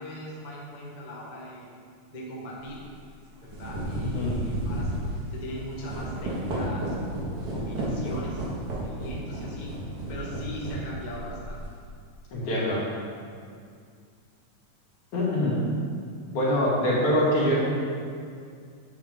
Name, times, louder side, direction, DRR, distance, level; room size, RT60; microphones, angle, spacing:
voice 1, 0.0-1.7 2.1-2.9 3.4-9.7 10.1-11.6, equal, 25° left, -5 dB, 1.0 m, -39 dB
sound 1, 2.6-2.8 3.3-11.8, right 1 dB, 55° right, 2.5 m, -32 dB
voice 2, 12.3-12.8 15.1-15.6 16.3-17.7, left 1 dB, 80° left, -7 dB, 3.7 m, -24 dB
9.4 x 8.2 x 3.6 m, 2.2 s
omnidirectional pair, 3.4 m